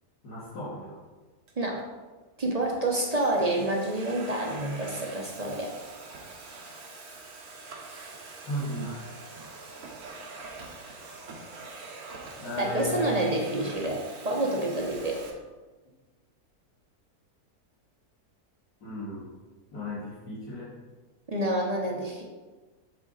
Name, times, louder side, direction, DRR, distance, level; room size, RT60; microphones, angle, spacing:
voice 1, 0.2-1.0 8.4-9.6 12.4-13.3 18.8-19.3 19.7-20.7, left 1 dB, 75° left, -10 dB, 2.1 m, -36 dB
Domestic sounds home sounds, 1.5-1.9 2.6-15.3, right 3 dB, 70° right, 1.4 m, -44 dB
voice 2, 2.4-5.7 12.6-15.2 21.3-22.2, right 1 dB, 40° right, -1 dB, 0.6 m, -28 dB
8.1 x 3.8 x 3.9 m, 1.3 s
omnidirectional pair, 1.7 m